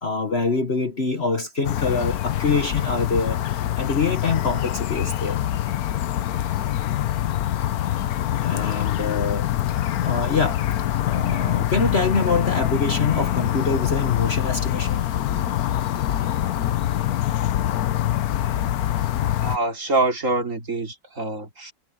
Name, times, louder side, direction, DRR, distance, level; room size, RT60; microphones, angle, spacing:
voice 1, 0.0-3.4 3.8-5.4 7.6-7.7 8.2-9.5 10.0-10.6 11.1-15.0, left 4 dB, 40° left, 1.4 m, -25 dB
sound 1, 1.6-19.6, left 12 dB, 65° left, 1.2 m, -24 dB
voice 2, 19.4-21.7, right 2 dB, 45° right, 3.4 m, -25 dB
omnidirectional pair, 1.9 m